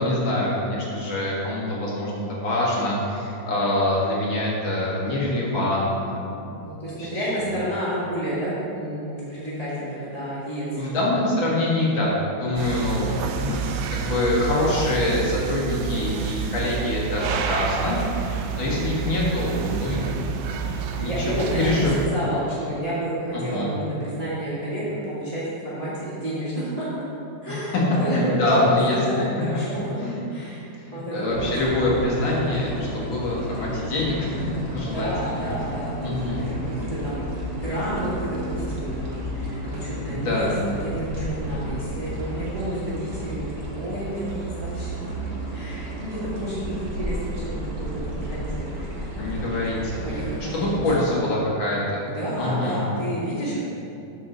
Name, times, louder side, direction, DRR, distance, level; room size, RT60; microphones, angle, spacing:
voice 1, 0.0-6.5 7.0-7.3 10.8-20.7 20.9-22.2 23.3-23.7 27.5-29.3 30.0-30.1 30.8-34.5 34.7-35.5 36.0-36.4 40.1-40.5 49.2-50.2 50.5-52.1 52.4-52.8, left 1 dB, 85° left, -5 dB, 2.5 m, -25 dB
voice 2, 6.6-11.0 18.6-19.0 21.0-21.6 22.0-27.0 27.4-30.0 30.3-31.5 34.8-44.9 45.5-51.2 52.0-53.6, right 1 dB, 20° right, -11 dB, 1.8 m, -30 dB
sound 1, 12.5-22.1, right 7 dB, 70° right, 1.1 m, -29 dB
sound 2, 31.3-50.7, right 1 dB, 55° right, 1.7 m, -32 dB
7.7 x 4.6 x 6.6 m, 2.7 s
omnidirectional pair, 2.1 m